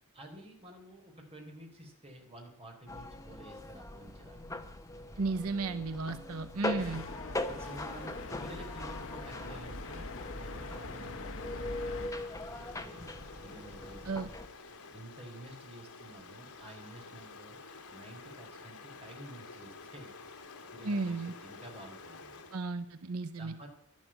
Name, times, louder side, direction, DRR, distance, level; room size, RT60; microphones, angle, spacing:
voice 1, 0.1-4.7 7.3-8.1 8.4-10.1 10.4-14.2 14.5-17.6 17.9-22.4 23.1-23.7, right 1 dB, 25° right, 2 dB, 4.0 m, -51 dB
sound 1, 2.9-14.5, left 1 dB, 15° left, 1.2 m, -41 dB
voice 2, 5.2-7.0 14.1-14.3 20.8-21.3 22.5-23.5, right 3 dB, 80° right, 10 dB, 0.9 m, -34 dB
sound 2, 6.8-12.1, left 2 dB, 60° left, 1.3 m, -43 dB
Stream, 7.6-22.7, left 4 dB, 80° left, 2.1 m, -50 dB
12.0 x 12.0 x 8.8 m, 0.75 s
head